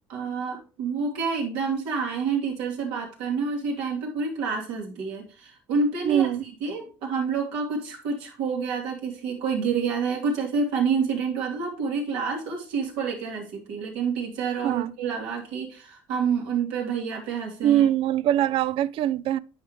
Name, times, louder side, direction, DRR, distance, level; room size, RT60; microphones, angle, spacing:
voice 1, 0.1-6.3 6.6-17.9, right 5 dB, 80° right, 2.7 m, -28 dB
voice 2, 6.0-6.4 14.6-14.9 17.6-19.4, right 11 dB, 55° right, 0.4 m, -22 dB
9.3 x 4.7 x 3.2 m
cardioid pair, 105°, 11 cm